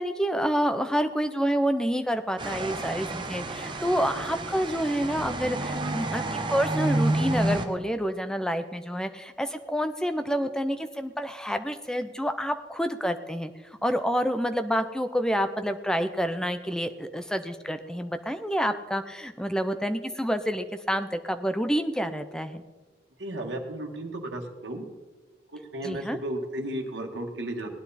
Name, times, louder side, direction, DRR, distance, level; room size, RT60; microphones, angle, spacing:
voice 1, 0.0-13.5 13.8-22.6 25.8-26.2, equal, 5° left, 9 dB, 0.6 m, -28 dB
sound 1, 2.4-7.6, right 2 dB, 25° right, 1.0 m, -29 dB
voice 2, 23.2-24.8 25.5-27.7, right 1 dB, 70° right, 1 dB, 1.7 m, -34 dB
17.5 x 10.0 x 4.2 m, 1.3 s
head